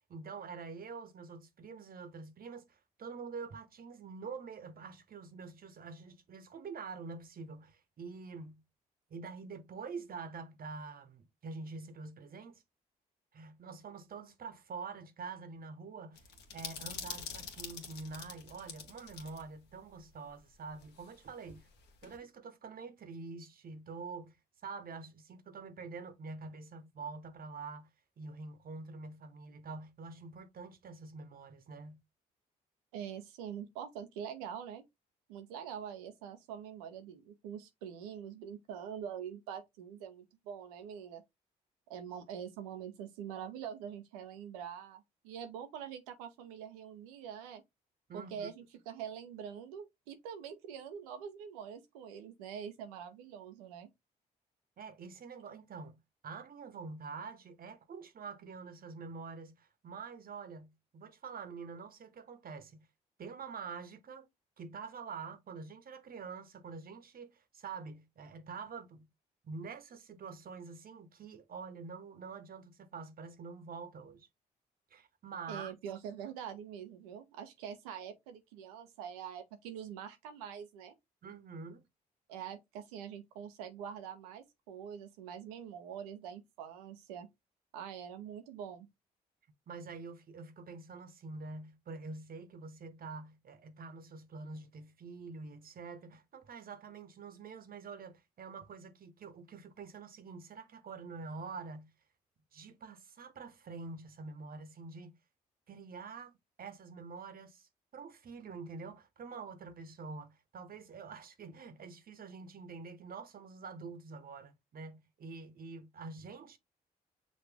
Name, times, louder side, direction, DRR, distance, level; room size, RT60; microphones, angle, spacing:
voice 1, 0.1-8.6 9.1-12.6 13.3-16.2 16.5-21.7 22.0-24.4 24.6-27.9 28.2-32.0 48.1-48.5 54.8-62.9 63.2-64.3 64.6-69.1 69.4-74.3 74.9-75.7 81.2-81.8 89.7-101.9 102.5-105.2 105.7-106.3 106.6-116.6, right 4 dB, 50° right, 1.0 m, -46 dB
sound 1, 16.2-19.4 19.7-19.8 20.8-22.2, left 6 dB, 70° left, 1.2 m, -46 dB
voice 2, 32.9-34.8 35.3-41.2 41.9-47.6 48.1-53.9 75.5-80.9 82.3-87.3 87.7-88.9, right 8 dB, 90° right, 0.7 m, -44 dB
6.2 x 2.5 x 3.4 m
hypercardioid pair, 50°, 19 cm